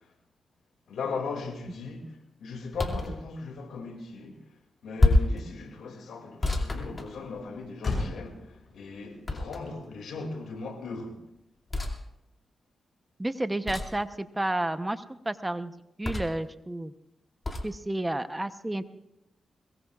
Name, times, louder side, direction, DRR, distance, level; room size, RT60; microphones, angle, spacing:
voice 1, 0.9-4.4 4.8-11.2, left 4 dB, 90° left, 2.4 m, -38 dB
sound 1, 2.7-3.2 5.0-5.4 6.4-7.6 9.3-9.9 11.7-12.0 13.7-14.0 16.0-16.5 17.4-17.7, left 2 dB, 30° left, 2.5 m, -26 dB
Motor vehicle (road), 4.6-12.4, left 3 dB, 50° left, 6.8 m, -41 dB
voice 2, 13.2-16.9 17.6-18.9, right 1 dB, 15° right, 0.9 m, -31 dB
22.0 x 21.5 x 2.4 m
cardioid pair, 65°, 0 cm